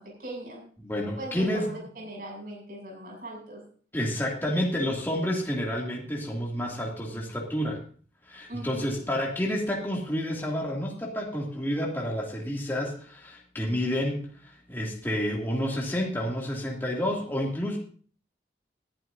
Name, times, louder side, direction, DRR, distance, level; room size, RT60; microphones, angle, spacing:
voice 1, 0.0-0.6 1.2-3.6 8.5-9.0, right 1 dB, 50° right, -1 dB, 7.2 m, -40 dB
voice 2, 0.8-1.7 3.9-7.8 8.3-17.8, equal, 10° left, -3 dB, 2.5 m, -29 dB
20.5 x 11.0 x 2.7 m, 0.44 s
head